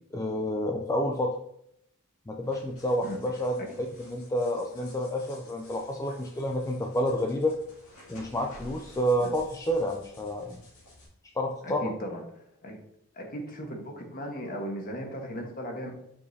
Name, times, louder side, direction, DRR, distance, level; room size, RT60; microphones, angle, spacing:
voice 1, 0.1-1.4 2.3-3.7 4.0-7.6 8.1-10.6 11.4-11.9, equal, 15° left, 1 dB, 0.4 m, -29 dB
sound 1, 2.4-11.1, left 1 dB, 75° left, 2.3 m, -52 dB
voice 2, 11.6-12.2 12.6-12.8 13.1-15.9, equal, 40° left, 2 dB, 1.3 m, -37 dB
7.0 x 5.1 x 2.7 m, 0.75 s
head